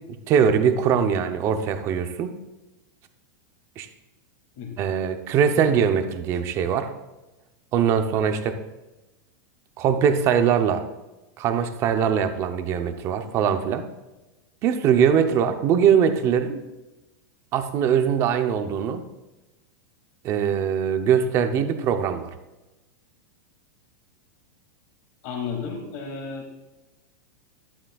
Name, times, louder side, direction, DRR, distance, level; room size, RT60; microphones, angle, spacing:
voice 1, 0.1-2.3 3.8-3.9 4.8-6.9 7.7-8.6 9.8-10.8 11.4-13.8 14.6-16.6 17.5-19.0 20.2-22.3, right 7 dB, 25° right, 8 dB, 0.7 m, -22 dB
voice 2, 25.2-26.5, left 5 dB, 40° left, 1 dB, 2.3 m, -32 dB
11.5 x 11.0 x 2.3 m, 1.1 s
supercardioid pair, 170°, 11 cm